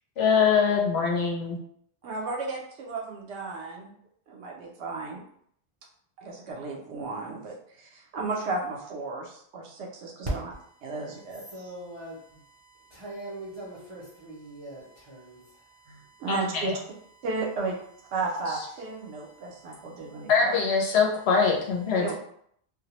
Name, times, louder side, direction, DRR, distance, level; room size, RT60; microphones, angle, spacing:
voice 1, 0.2-1.6 16.3-16.7 20.3-22.1, left 5 dB, 75° left, 0 dB, 0.9 m, -23 dB
voice 2, 2.0-3.9 4.3-5.2 6.2-10.5 10.8-11.7 15.9-16.7 17.2-17.8 18.1-20.5 22.0-22.1, right 3 dB, 85° right, -1 dB, 0.9 m, -34 dB
voice 3, 11.5-12.4 12.8-16.2 19.4-20.3, right 1 dB, 40° right, -7 dB, 0.5 m, -43 dB
2.3 x 2.0 x 2.8 m, 0.66 s
omnidirectional pair, 1.1 m